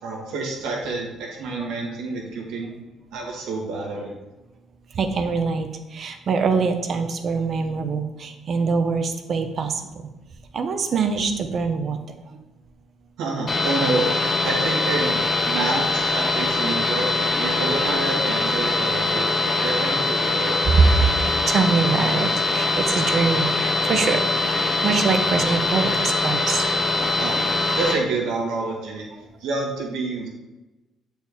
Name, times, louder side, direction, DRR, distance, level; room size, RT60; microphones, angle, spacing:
voice 1, 0.0-2.7 3.1-4.1 13.2-17.1 17.4-19.3 19.6-20.7 27.2-27.4 27.8-29.1 29.4-30.3, right 3 dB, 85° right, -1 dB, 1.7 m, -28 dB
voice 2, 5.0-9.8 10.5-12.0 21.5-24.2 24.8-26.6, right 5 dB, 50° right, 7 dB, 0.8 m, -24 dB
sound 1, 13.5-27.9, left 2 dB, 35° left, 1.5 m, -22 dB
7.7 x 4.5 x 3.5 m, 1.1 s
cardioid pair, 90°, 0 cm